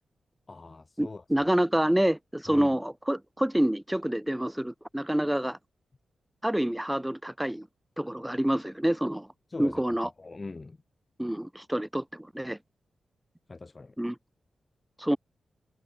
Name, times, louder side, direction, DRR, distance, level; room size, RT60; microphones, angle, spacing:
voice 1, 0.5-1.5 2.5-2.7 9.5-10.8 13.5-14.0, left 3 dB, 30° left, 5.8 m, -42 dB
voice 2, 1.0-5.6 6.4-7.7 8.0-9.3 9.6-10.1 11.2-12.6 14.0-14.1 15.0-15.2, right 1 dB, 5° right, 3.5 m, -27 dB
cardioid pair, 85°, 0 cm